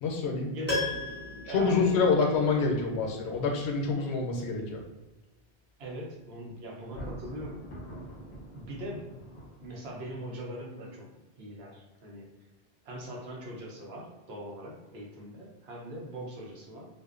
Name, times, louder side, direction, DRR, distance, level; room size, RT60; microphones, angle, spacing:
voice 1, 0.0-0.5 1.5-4.8, left 4 dB, 90° left, 1 dB, 0.8 m, -27 dB
voice 2, 0.5-1.9 5.8-7.6 8.5-9.1 9.6-11.1 11.4-12.3 12.8-16.9, equal, 80° right, -2 dB, 0.9 m, -41 dB
Piano, 0.7-2.7 3.0-3.1, left 2 dB, 10° right, 0.7 m, -35 dB
Thunder, 6.8-10.1, equal, 55° left, 0.7 m, -44 dB
2.5 x 2.1 x 2.4 m, 1.1 s
omnidirectional pair, 1.0 m